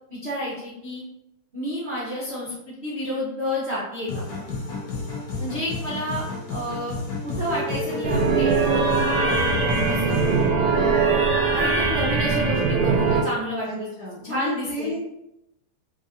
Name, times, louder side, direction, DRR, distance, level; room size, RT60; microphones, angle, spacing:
voice 1, 0.1-1.0 1.5-4.2 5.4-6.2 6.5-7.0 7.2-10.2 10.7-11.2 11.5-13.9 14.2-14.9, equal, 60° right, -7 dB, 0.6 m, -30 dB
sound 1, 4.1-10.5, left 3 dB, 60° left, 1.2 m, -31 dB
sound 2, 8.0-13.2, right 4 dB, 80° right, 1.5 m, -21 dB
voice 2, 13.6-15.0, left 1 dB, 45° left, -8 dB, 1.1 m, -32 dB
3.8 x 2.7 x 2.7 m, 0.85 s
omnidirectional pair, 2.4 m